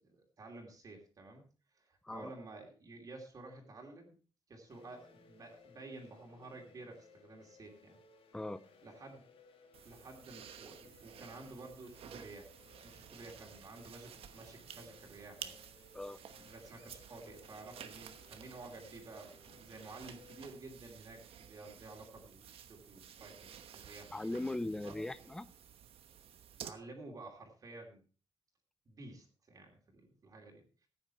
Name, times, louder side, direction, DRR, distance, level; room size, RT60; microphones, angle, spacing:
voice 1, 0.0-1.5 1.7-4.2 4.5-8.0 8.8-9.3 9.8-12.5 12.8-15.5 16.4-24.2 24.8-25.0 26.6-28.0 28.9-30.6, right 2 dB, 40° right, 0 dB, 2.7 m, -52 dB
sound 1, 4.7-20.4, left 4 dB, 65° left, 2.0 m, -63 dB
sound 2, 9.7-26.7, right 9 dB, 80° right, 1.1 m, -53 dB
voice 2, 24.1-25.5, left 2 dB, 5° left, 15 dB, 0.5 m, -39 dB
14.5 x 9.1 x 4.4 m, 0.37 s
wide cardioid pair, 170°, 10 cm